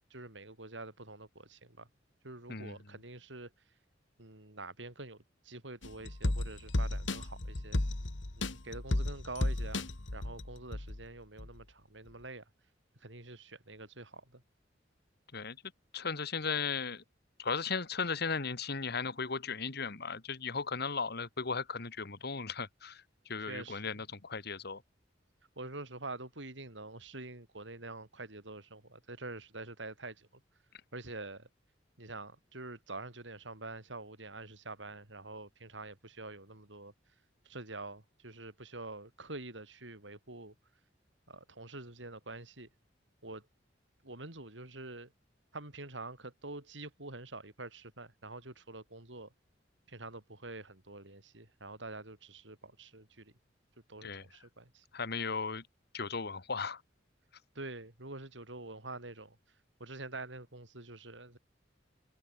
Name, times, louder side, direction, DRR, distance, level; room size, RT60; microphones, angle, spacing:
voice 1, 0.1-1.9 2.2-3.5 4.2-7.8 8.4-12.4 13.0-14.4 23.4-24.0 25.6-30.4 30.9-31.5 32.0-36.9 37.4-40.5 41.3-42.7 43.2-43.5 44.0-45.1 45.5-49.3 49.9-53.3 53.9-54.9 57.6-59.4 59.8-61.4, right 2 dB, 75° right, 5.6 m, -46 dB
sound 1, 5.8-11.0 11.4-11.5, left 1 dB, 85° left, 1.8 m, -34 dB
voice 2, 15.9-17.0 17.4-23.0 23.3-24.8 54.0-54.2 54.9-55.6 55.9-56.8, left 5 dB, 60° left, 1.8 m, -36 dB
open air
head